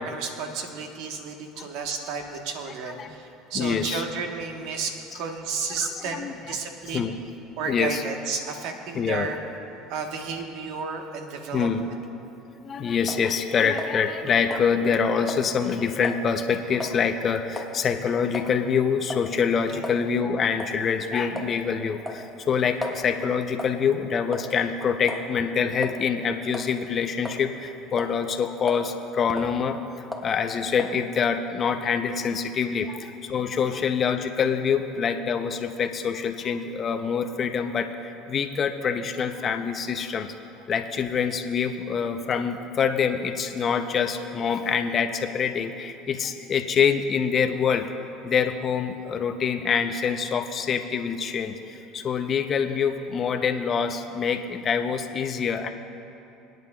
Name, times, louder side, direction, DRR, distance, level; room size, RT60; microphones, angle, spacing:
voice 1, 0.0-7.1 7.6-9.4 9.9-11.7 19.7-19.8, right 5 dB, 70° right, 3 dB, 1.2 m, -32 dB
voice 2, 3.5-4.0 5.8-6.6 6.9-7.2 7.7-8.0 8.9-9.3 11.5-11.9 12.6-29.9 30.2-40.3 40.7-47.9 48.2-55.7, left 6 dB, 40° left, 6 dB, 0.7 m, -25 dB
sound 1, 13.1-13.3 13.8-14.2 14.5-14.7 15.3-15.5 16.0-16.2 16.8-17.0 17.6-17.8 18.3-18.5 19.1-19.3 19.8-20.0 20.6-20.8 21.4-21.6 22.1-23.0 23.6-23.8 24.3-24.7 25.1-25.3 25.8-26.0 26.5-26.7 27.3-27.7 28.0-28.2 28.7-28.9 29.3-29.5 30.1-30.3 30.8-31.0, left 1 dB, ahead, 1.1 m, -35 dB
22.5 x 9.3 x 2.4 m, 2.8 s
supercardioid pair, 105°, 0 cm